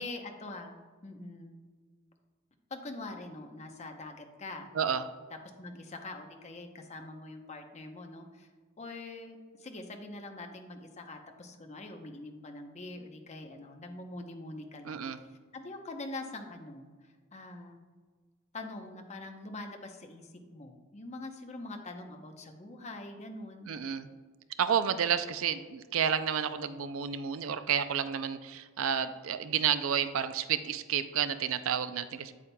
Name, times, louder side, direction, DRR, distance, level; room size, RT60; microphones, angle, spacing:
voice 1, 0.0-1.5 2.7-4.7 5.6-8.5 8.8-15.0 15.5-17.8 18.5-23.7, left 2 dB, 35° left, 4 dB, 0.7 m, -44 dB
voice 2, 4.7-5.1 14.8-15.2 23.7-24.1 24.6-32.3, right 8 dB, 70° right, 12 dB, 0.4 m, -30 dB
8.6 x 8.3 x 2.2 m, 1.5 s
head